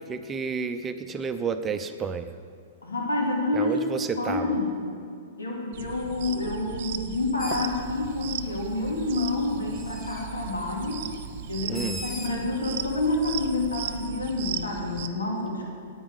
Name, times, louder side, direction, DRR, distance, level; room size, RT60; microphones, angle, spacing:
voice 1, 0.1-2.4 3.5-4.5 11.7-12.0, right 6 dB, 20° right, 8 dB, 0.6 m, -31 dB
voice 2, 2.8-3.8 4.2-4.8 5.4-11.0 11.5-15.6, left 2 dB, 85° left, -1 dB, 2.7 m, -28 dB
sound 1, 5.7-15.1, right 10 dB, 55° right, 0.9 m, -37 dB
Bird, 7.4-14.1, right 1 dB, 10° left, 1.9 m, -43 dB
9.9 x 8.9 x 8.1 m, 2.3 s
hypercardioid pair, 110°, 0 cm